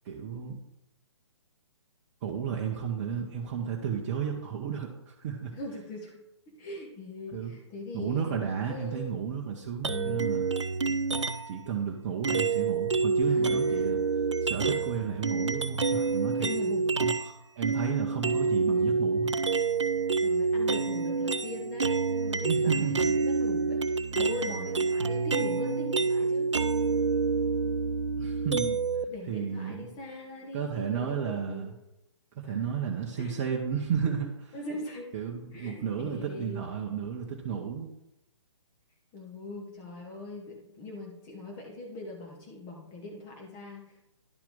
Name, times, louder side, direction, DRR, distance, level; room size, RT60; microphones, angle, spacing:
voice 1, 0.0-0.6 2.2-5.5 7.3-7.5 7.9-10.4 11.5-14.0 14.4-16.5 17.0-19.3 22.4-23.1 28.2-28.8 29.3-29.9 30.5-31.7 32.4-34.6 35.1-37.9, right 7 dB, 30° right, 0 dB, 0.7 m, -33 dB
voice 2, 5.5-6.2 6.6-9.2 9.8-10.3 13.3-13.9 16.4-17.0 20.2-26.5 29.1-31.7 32.5-32.6 33.2-33.4 34.5-35.1 35.5-36.7 39.1-44.1, left 2 dB, 20° left, 0 dB, 1.1 m, -41 dB
sound 1, 9.8-11.6 12.2-17.3 17.6-29.0, right 4 dB, 85° right, 0.4 m, -28 dB
10.5 x 4.6 x 3.6 m, 0.86 s
figure-of-eight pair, 130°, 15 cm